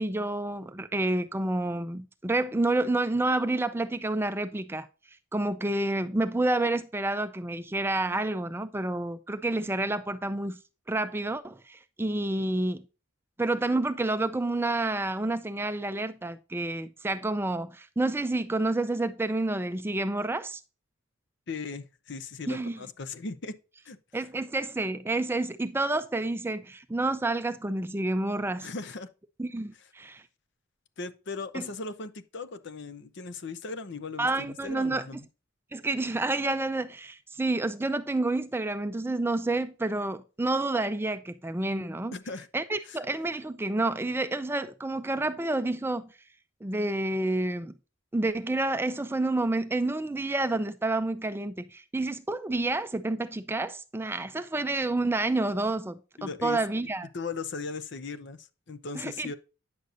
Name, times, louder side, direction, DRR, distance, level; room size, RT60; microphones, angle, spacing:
voice 1, 0.0-4.9 5.3-10.6 10.9-12.8 13.4-20.6 22.5-22.8 24.1-28.7 29.4-30.2 31.5-31.7 34.2-35.1 35.7-42.1 42.5-46.1 46.6-47.7 48.1-57.1 58.9-59.3, right 2 dB, 10° right, 0.4 m, -29 dB
voice 2, 21.5-23.5 23.8-24.0 28.6-29.1 29.8-29.9 31.0-35.2 42.1-42.5 42.9-43.0 56.2-56.6 57.1-59.4, left 4 dB, 55° left, 0.7 m, -38 dB
9.4 x 6.4 x 2.5 m
head